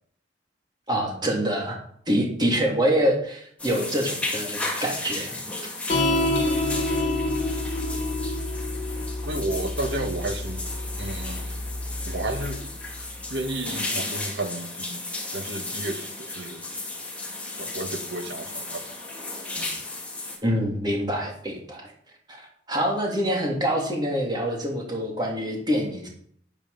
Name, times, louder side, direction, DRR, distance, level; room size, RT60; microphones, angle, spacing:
voice 1, 0.9-1.8 2.1-5.4 20.4-21.9 22.7-26.1, equal, 25° right, 0 dB, 3.0 m, -25 dB
sound 1, 3.6-20.4, left 2 dB, 5° left, 2.4 m, -34 dB
sound 2, 5.9-12.6, left 2 dB, 40° left, 3.1 m, -28 dB
voice 2, 9.2-10.7 11.0-11.6 12.1-12.8 13.3-16.6 17.6-18.9 19.5-19.8, right 2 dB, 75° right, 6 dB, 1.8 m, -32 dB
10.0 x 9.9 x 5.7 m, 0.62 s
head